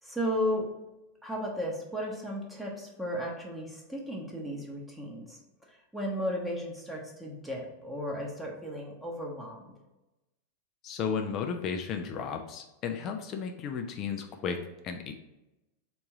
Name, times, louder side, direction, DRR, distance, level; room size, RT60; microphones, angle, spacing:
voice 1, 0.0-0.6 1.2-9.7, equal, 5° right, -2 dB, 0.9 m, -35 dB
voice 2, 10.8-15.1, left 6 dB, 35° left, 5 dB, 0.4 m, -34 dB
3.5 x 3.0 x 4.6 m, 0.98 s
figure-of-eight pair, 90°, 0 cm